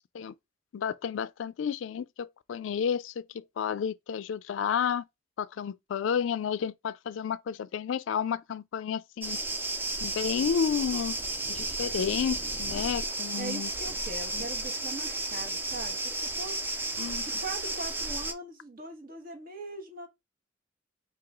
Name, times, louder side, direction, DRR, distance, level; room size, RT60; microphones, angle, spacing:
voice 1, 0.7-5.0 5.4-9.4 10.0-11.2 11.5-13.7 14.3-14.5 17.0-17.3, left 7 dB, 80° left, 0.3 m, -31 dB
sound 1, 9.2-18.3, right 2 dB, 10° right, 0.4 m, -33 dB
voice 2, 13.4-16.6 17.2-20.1, right 2 dB, 50° right, 1.2 m, -41 dB
4.8 x 2.7 x 3.5 m
head